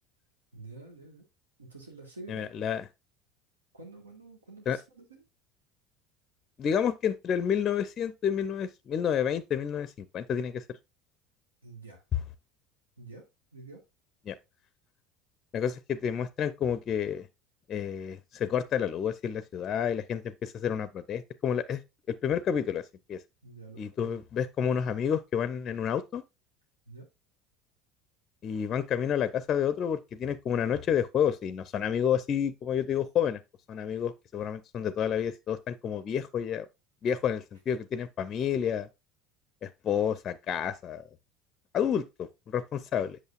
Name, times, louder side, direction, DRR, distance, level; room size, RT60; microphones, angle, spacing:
voice 1, 0.5-1.2 1.6-2.5 3.7-5.2 11.6-12.0 13.0-13.2 13.5-13.8 23.4-24.2 26.9-27.1, right 3 dB, 80° right, 1.5 m, -48 dB
voice 2, 2.3-2.8 4.7-4.8 6.6-10.6 12.1-12.2 14.3-14.4 15.5-17.3 17.7-21.8 22.2-22.8 23.1-23.2 23.8-26.2 28.4-33.4 33.7-36.7 37.0-38.9 39.6-41.0 41.7-43.2, left 8 dB, 35° left, 0.5 m, -30 dB
7.9 x 6.3 x 2.4 m
figure-of-eight pair, 70°, 0 cm